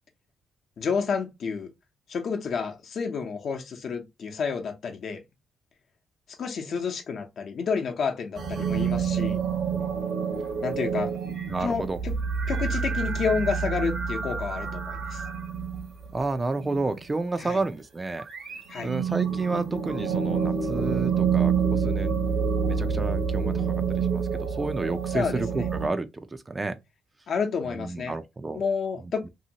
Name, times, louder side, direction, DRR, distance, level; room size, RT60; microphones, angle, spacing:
voice 1, 0.8-1.7 2.1-5.2 6.4-9.4 10.6-11.1 11.6-12.1 12.5-15.2 17.4-17.6 18.7-18.9 25.1-25.6 27.3-28.1 28.5-29.2, left 5 dB, 60° left, 0.8 m, -30 dB
sound 1, 8.4-17.0 18.1-25.9, right 6 dB, 60° right, 0.9 m, -28 dB
voice 2, 11.5-12.0 16.1-18.3 18.8-22.2 22.7-26.8 27.6-28.6 29.2-29.3, right 3 dB, 25° right, 0.4 m, -31 dB
2.8 x 2.7 x 2.8 m
cardioid pair, 90°, 0 cm